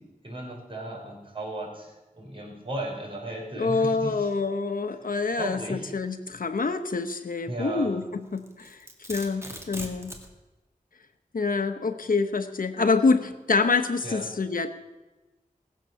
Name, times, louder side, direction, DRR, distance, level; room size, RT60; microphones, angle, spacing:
voice 1, 0.0-4.3 4.9-5.1 5.4-5.9 7.4-7.9 14.0-14.3, right 1 dB, 35° right, -2 dB, 5.2 m, -35 dB
voice 2, 3.6-8.0 8.3-10.2 11.3-14.7, left 4 dB, 70° left, 8 dB, 1.0 m, -26 dB
Domestic sounds home sounds, 8.4-10.3, right 1 dB, 20° right, 2.3 m, -40 dB
20.0 x 7.5 x 6.9 m, 1.1 s
wide cardioid pair, 80°, 15 cm